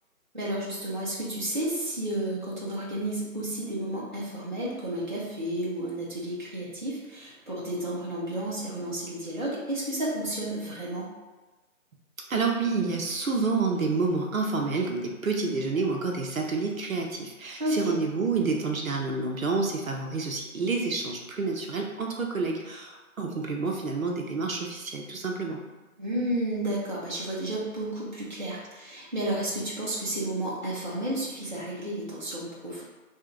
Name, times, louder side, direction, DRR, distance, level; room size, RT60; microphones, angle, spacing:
voice 1, 0.3-11.1 17.6-17.9 26.0-32.8, right 1 dB, 35° right, -7 dB, 0.7 m, -32 dB
voice 2, 12.3-25.6, right 4 dB, 65° right, 0 dB, 0.7 m, -29 dB
3.4 x 2.7 x 3.7 m, 1.2 s
figure-of-eight pair, 175°, 44 cm